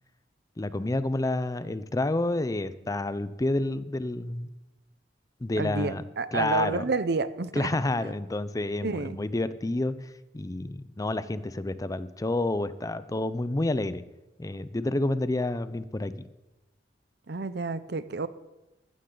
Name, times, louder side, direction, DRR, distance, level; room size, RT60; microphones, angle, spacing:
voice 1, 0.6-4.5 5.4-6.0 6.3-6.9 7.5-14.0 14.4-16.3, left 2 dB, 20° left, 15 dB, 0.5 m, -29 dB
voice 2, 5.6-7.7 8.0-8.1 8.8-9.2 17.3-18.3, right 4 dB, 65° right, 15 dB, 0.7 m, -30 dB
15.0 x 13.5 x 3.9 m, 1.0 s
head